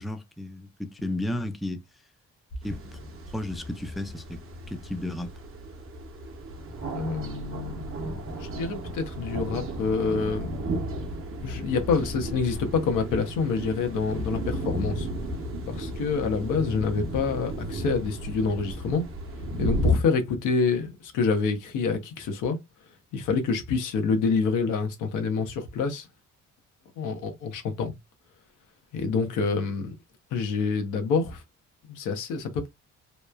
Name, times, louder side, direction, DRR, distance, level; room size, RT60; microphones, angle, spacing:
voice 1, 0.0-1.8 2.6-3.0 3.3-4.4 4.7-5.3, left 1 dB, ahead, 0.4 m, -33 dB
sound 1, 2.6-19.9, equal, 45° right, 0.8 m, -33 dB
voice 2, 6.9-7.9 8.4-10.6 11.4-15.1 15.7-19.1 19.6-22.6 23.1-26.1 27.0-27.9 28.9-29.9 30.3-31.4 31.9-32.7, left 5 dB, 90° left, 0.7 m, -27 dB
3.0 x 2.1 x 2.2 m
cardioid pair, 90°, 30 cm